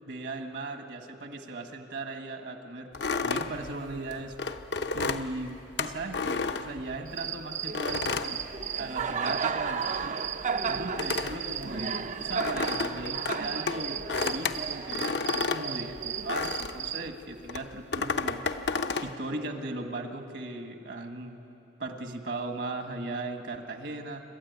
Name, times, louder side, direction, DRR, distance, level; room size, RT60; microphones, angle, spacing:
voice 1, 0.0-2.9 3.2-4.4 4.9-8.4 8.8-10.1 10.7-18.4 19.0-21.4 21.8-24.2, right 2 dB, 65° right, 6 dB, 1.6 m, -38 dB
sound 1, 2.9-7.2 7.7-9.2 9.5-16.9 17.5-19.1, left 4 dB, 65° left, 0.8 m, -32 dB
Cricket, 7.1-17.1, right 6 dB, 40° right, 0.6 m, -33 dB
27.5 x 12.5 x 9.4 m, 2.9 s
head